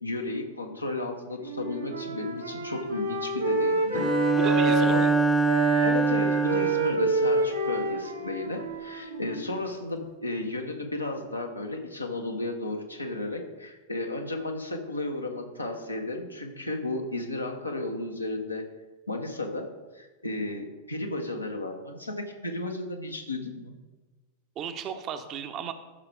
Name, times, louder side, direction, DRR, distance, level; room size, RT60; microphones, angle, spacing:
voice 1, 0.0-4.1 4.8-5.1 5.8-18.6 19.1-23.7, left 2 dB, 85° left, 2 dB, 1.1 m, -33 dB
Wind instrument woodwind instrument, 1.4-5.2 5.4-9.6, right 1 dB, 85° right, 1.9 m, -29 dB
Bowed string instrument, 3.9-7.1, right 4 dB, 5° right, 0.5 m, -24 dB
voice 2, 4.4-5.1 24.6-25.7, right 8 dB, 35° right, 7 dB, 0.8 m, -34 dB
13.5 x 5.7 x 3.5 m, 1.3 s
figure-of-eight pair, 90°, 0 cm